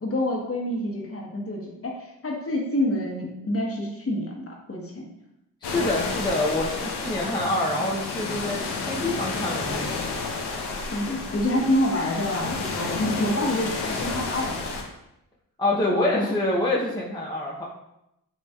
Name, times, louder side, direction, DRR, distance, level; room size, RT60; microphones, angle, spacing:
voice 1, 0.0-5.0 10.9-14.6 15.9-16.4, left 1 dB, 35° left, -1 dB, 1.1 m, -27 dB
sound 1, 5.6-14.8, left 4 dB, 80° left, 0.7 m, -31 dB
voice 2, 5.6-9.9 15.6-17.7, left 1 dB, 10° left, -5 dB, 0.8 m, -26 dB
4.3 x 3.1 x 2.4 m, 0.85 s
supercardioid pair, 40°, 39 cm